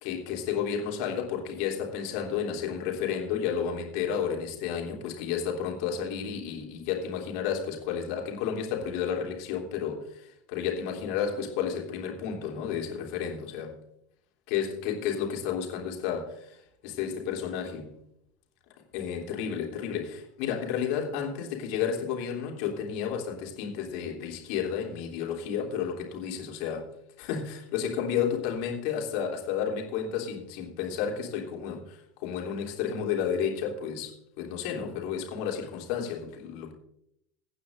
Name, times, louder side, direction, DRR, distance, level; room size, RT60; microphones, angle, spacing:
voice 1, 0.0-13.7 14.5-17.9 18.9-26.9 27.2-36.7, left 7 dB, 50° left, 3.1 m, -32 dB
23.5 x 9.4 x 2.6 m
figure-of-eight pair, 75°, 0 cm